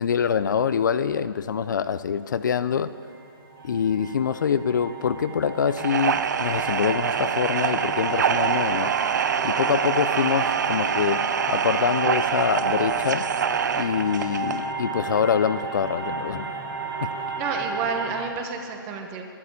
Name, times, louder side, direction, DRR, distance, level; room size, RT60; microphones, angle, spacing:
voice 1, 0.0-2.9 3.6-8.9 9.4-13.3 13.8-16.5, left 7 dB, 55° left, 13 dB, 0.5 m, -25 dB
sound 1, 2.9-18.2, right 4 dB, 80° right, 4.1 m, -34 dB
sound 2, 5.8-14.7, right 7 dB, 55° right, 0.6 m, -25 dB
voice 2, 17.4-19.2, right 5 dB, 20° right, 4 dB, 1.0 m, -30 dB
12.0 x 11.0 x 8.4 m, 2.4 s
hypercardioid pair, 170°, 12 cm